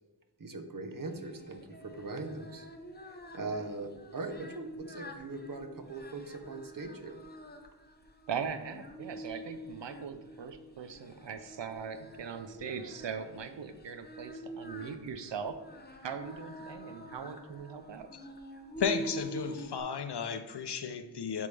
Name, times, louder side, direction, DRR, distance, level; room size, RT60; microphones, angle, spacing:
voice 1, 0.4-2.7 3.0-7.2, right 3 dB, 50° right, 6 dB, 0.8 m, -40 dB
Singing, 1.1-19.8, right 1 dB, 25° left, 0.6 m, -46 dB
voice 2, 8.3-15.6 16.0-18.1, right 6 dB, 85° right, 9 dB, 0.6 m, -40 dB
voice 3, 18.8-21.5, left 6 dB, 65° left, 9 dB, 0.6 m, -34 dB
10.5 x 3.6 x 3.3 m, 1.2 s
wide cardioid pair, 75°, 43 cm